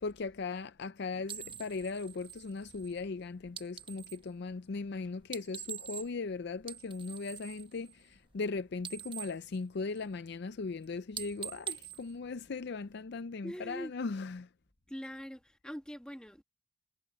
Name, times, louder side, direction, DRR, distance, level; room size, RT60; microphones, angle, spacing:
voice 1, 0.0-14.5, left 4 dB, 55° left, 0.5 m, -38 dB
sound 1, 1.3-4.3 5.2-6.3 6.6-8.5 8.7-10.3 10.6-10.8 11.1-13.0, right 9 dB, 25° right, 1.0 m, -45 dB
voice 2, 13.4-13.9 14.9-16.4, equal, 5° left, 1.7 m, -43 dB
head